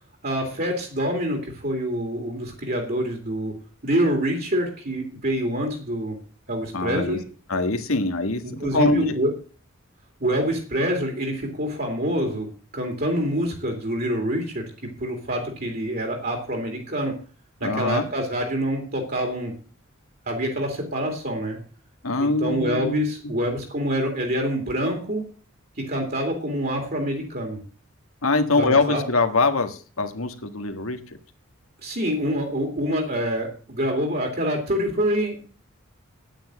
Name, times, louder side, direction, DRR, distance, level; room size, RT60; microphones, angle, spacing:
voice 1, 0.2-3.5 3.8-6.2 6.5-7.2 8.6-9.3 10.2-12.5 12.7-17.2 17.6-19.5 20.3-21.6 22.2-25.2 25.9-27.6 28.6-29.0 31.8-35.5, equal, 45° right, 3 dB, 2.7 m, -26 dB
voice 2, 6.7-7.2 7.5-9.1 17.6-18.0 22.0-23.3 28.2-31.0, left 3 dB, 85° left, 8 dB, 1.7 m, -23 dB
9.8 x 9.1 x 7.6 m, 0.40 s
head